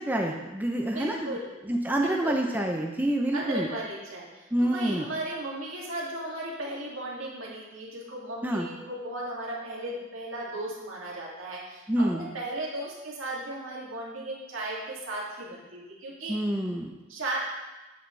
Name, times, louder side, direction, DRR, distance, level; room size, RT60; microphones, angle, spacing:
voice 1, 0.0-1.3 1.7-3.7 4.5-5.1 8.4-8.7 11.9-12.2 16.3-16.9, right 1 dB, 10° right, 1 dB, 0.6 m, -27 dB
voice 2, 0.8-1.6 2.0-2.4 3.3-16.4 17.1-17.4, right 1 dB, 85° right, -4 dB, 2.4 m, -36 dB
8.9 x 8.5 x 3.2 m, 1.1 s
head